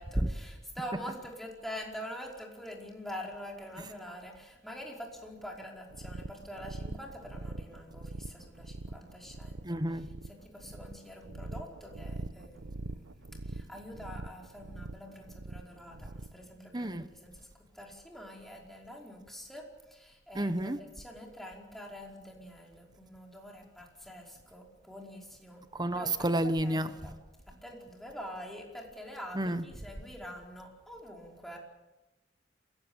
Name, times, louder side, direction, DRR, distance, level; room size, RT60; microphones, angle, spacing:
voice 1, 0.0-13.0 13.4-17.5 17.7-25.7 25.9-26.1 26.6-27.1 27.6-31.6, equal, ahead, 5.1 m, -45 dB
sound 1, 5.9-16.5, right 2 dB, 80° right, 1.0 m, -43 dB
voice 2, 9.6-10.1 16.7-17.0 20.3-20.8 25.7-27.0 29.3-29.6, right 1 dB, 20° right, 1.1 m, -30 dB
28.0 x 16.0 x 9.0 m
head